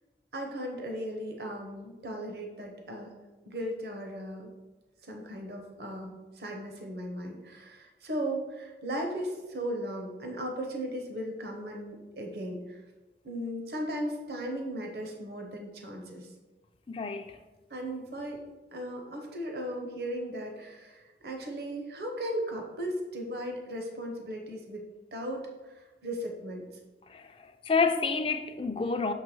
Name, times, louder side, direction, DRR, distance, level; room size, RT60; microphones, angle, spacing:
voice 1, 0.3-3.1 3.4-4.5 5.0-12.8 13.2-16.3 17.7-18.4 18.7-24.8 25.1-26.7, equal, 65° right, 1.0 m, -37 dB
voice 2, 16.9-17.4 27.1-29.1, left 4 dB, 30° left, 0.4 m, -29 dB
6.5 x 3.4 x 6.0 m
head